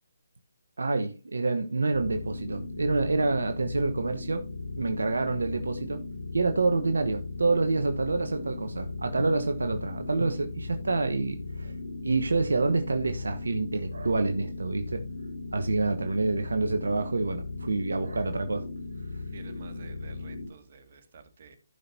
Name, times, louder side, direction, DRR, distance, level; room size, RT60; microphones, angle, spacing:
voice 1, 0.8-4.4 4.8-6.0 6.3-11.7 12.0-15.0 15.5-18.7, right 3 dB, 75° right, 1.1 m, -27 dB
sound 1, 1.9-20.5, left 3 dB, 80° left, 3.3 m, -38 dB
voice 2, 19.3-21.6, right 5 dB, 45° right, 2.1 m, -51 dB
15.5 x 6.0 x 2.7 m
figure-of-eight pair, 150°, 0 cm